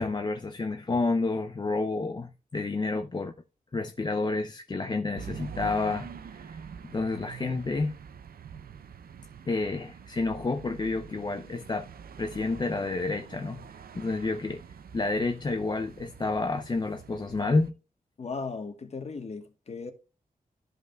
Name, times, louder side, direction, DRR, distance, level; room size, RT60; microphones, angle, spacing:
voice 1, 0.0-3.3 3.7-6.6 6.8-8.0 9.5-11.9 12.2-13.6 13.9-14.6 14.9-17.7, left 3 dB, 30° left, 0.5 m, -29 dB
sound 1, 5.1-17.7, right 7 dB, 85° right, 0.6 m, -45 dB
voice 2, 18.2-19.9, left 4 dB, 45° left, 1.3 m, -37 dB
13.5 x 5.4 x 2.3 m
wide cardioid pair, 150°, 15 cm